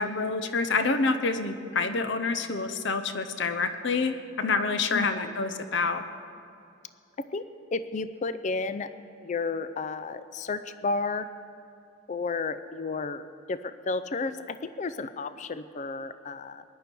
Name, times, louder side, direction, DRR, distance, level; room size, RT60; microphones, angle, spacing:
voice 1, 0.0-6.0, left 4 dB, 60° left, 10 dB, 0.8 m, -27 dB
voice 2, 4.9-5.4 7.2-7.5 7.7-8.9 9.2-11.3 12.1-16.6, left 3 dB, 35° left, 13 dB, 0.4 m, -32 dB
20.5 x 10.5 x 4.5 m, 2.5 s
head